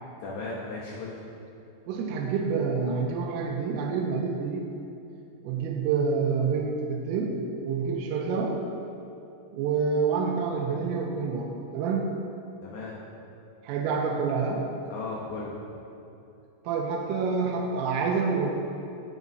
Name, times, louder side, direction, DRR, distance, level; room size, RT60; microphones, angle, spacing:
voice 1, 0.2-1.2 12.6-13.0 14.9-15.6, left 3 dB, 75° left, -5 dB, 2.5 m, -36 dB
voice 2, 1.9-4.7 5.4-7.4 7.6-8.6 9.5-12.1 13.6-14.6 16.7-18.5, right 5 dB, 90° right, 1 dB, 3.4 m, -27 dB
17.0 x 7.2 x 2.7 m, 2.8 s
omnidirectional pair, 5.8 m